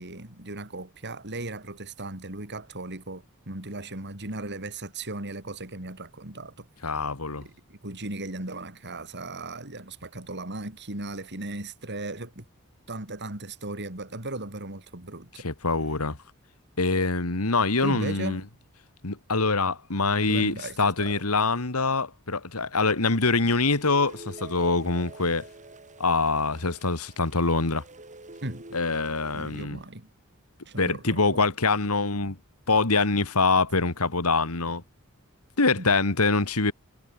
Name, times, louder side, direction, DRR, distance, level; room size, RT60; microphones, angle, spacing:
voice 1, 0.0-6.7 7.4-12.4 12.9-15.4 17.8-18.5 20.3-21.2 28.4-28.8 29.3-30.1 30.7-31.5 35.8-35.9, right 2 dB, 55° right, 4.9 m, -37 dB
voice 2, 6.8-7.5 15.4-16.2 16.8-18.4 19.0-25.5 26.0-27.8 28.7-29.8 30.8-32.4 32.7-34.8 35.6-36.7, left 3 dB, 85° left, 2.3 m, -24 dB
sound 1, 23.1-29.6, right 2 dB, 35° right, 7.9 m, -48 dB
head